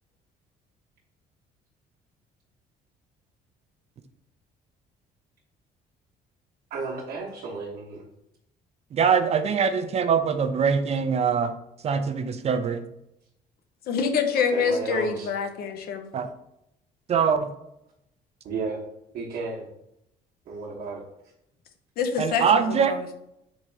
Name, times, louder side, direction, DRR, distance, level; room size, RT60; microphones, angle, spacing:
voice 1, 6.7-8.0 14.5-15.3 18.4-18.8 19.1-19.7 20.5-21.0, right 3 dB, 60° right, -5 dB, 0.9 m, -33 dB
voice 2, 8.9-11.5 11.8-12.8 16.1-16.3 17.1-17.5 22.2-22.9, right 6 dB, 40° right, 9 dB, 0.4 m, -23 dB
voice 3, 13.9-16.1 22.0-23.1, left 5 dB, 65° left, 7 dB, 0.7 m, -26 dB
3.6 x 2.9 x 4.4 m, 0.81 s
cardioid pair, 110°, 17 cm